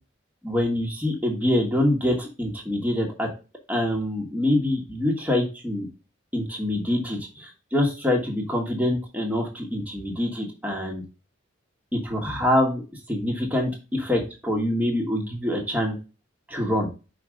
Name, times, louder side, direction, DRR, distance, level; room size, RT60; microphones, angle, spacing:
voice 1, 0.4-3.3 3.7-5.9 6.3-11.0 11.9-12.8 13.1-16.0 16.5-16.9, left 1 dB, 5° right, 0 dB, 1.4 m, -25 dB
5.2 x 4.9 x 5.1 m, 0.31 s
head